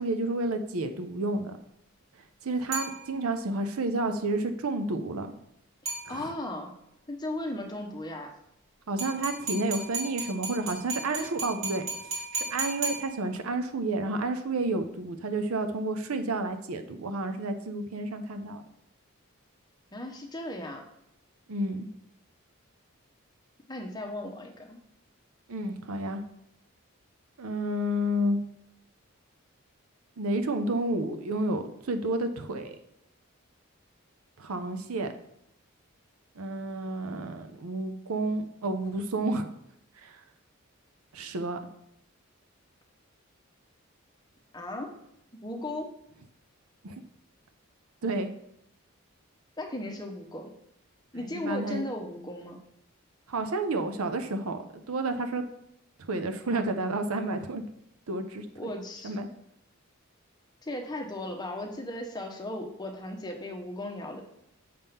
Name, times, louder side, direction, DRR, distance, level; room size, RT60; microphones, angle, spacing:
voice 1, 0.0-1.6 2.4-5.3 6.1-6.3 8.9-18.6 21.5-21.9 25.5-26.2 27.4-28.4 30.2-32.8 34.4-35.1 36.4-39.5 40.0-40.2 41.1-41.6 46.8-47.0 48.0-48.3 51.1-51.8 53.3-55.4 56.0-57.6 58.1-58.5 59.0-59.3, right 2 dB, 85° right, 8 dB, 0.6 m, -30 dB
sound 1, 2.7-3.5 5.9-6.6 9.0-13.6, right 3 dB, 65° right, 2.5 m, -36 dB
voice 2, 5.8-6.7 7.1-8.3 19.9-20.8 23.7-24.8 44.5-44.9 45.3-45.9 49.6-50.5 51.1-52.6 58.6-59.2 60.6-64.2, left 1 dB, 20° left, 3 dB, 0.8 m, -36 dB
6.7 x 3.6 x 5.7 m, 0.77 s
head